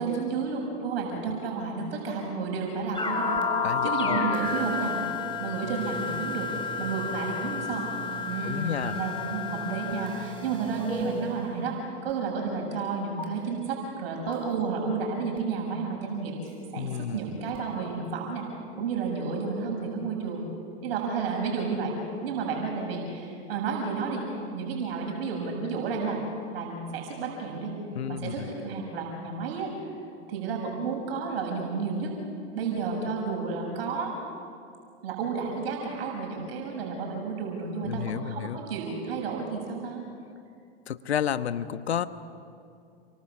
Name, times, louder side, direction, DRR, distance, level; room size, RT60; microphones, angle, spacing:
voice 1, 0.0-3.4 3.8-5.0 5.4-6.5 6.8-7.9 8.3-18.4 18.8-20.5 20.8-22.0 22.2-24.2 24.5-26.2 26.5-27.7 28.1-29.7 30.3-32.1 32.5-34.1 35.0-40.0, right 5 dB, 65° right, 0 dB, 7.2 m, -31 dB
sound 1, 2.9-11.8 13.2-13.3 14.3-14.4 15.4-15.5 17.5-17.6, left 4 dB, 15° left, 4.3 m, -31 dB
voice 2, 3.6-4.3 8.4-9.0 16.8-17.4 27.9-28.5 37.8-38.6 40.9-42.1, left 9 dB, 80° left, 11 dB, 1.3 m, -31 dB
29.5 x 24.5 x 7.2 m, 2.4 s
hypercardioid pair, 105°, 32 cm